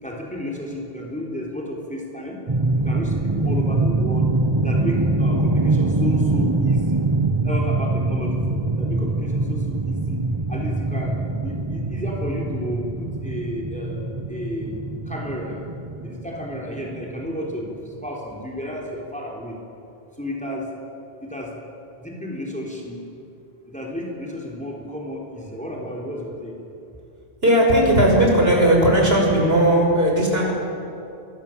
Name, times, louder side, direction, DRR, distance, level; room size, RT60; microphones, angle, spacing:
voice 1, 0.0-2.4 2.8-4.3 4.6-7.0 7.4-10.2 10.5-15.6 16.0-19.6 20.2-20.7 21.2-21.5 22.0-23.0 23.7-26.5, equal, 5° left, -1 dB, 3.8 m, -32 dB
sound 1, 2.5-18.0, right 2 dB, 25° right, 1.1 m, -23 dB
voice 2, 27.4-30.5, right 1 dB, 65° right, -1 dB, 6.2 m, -17 dB
27.0 x 22.5 x 7.6 m, 2.8 s
omnidirectional pair, 1.1 m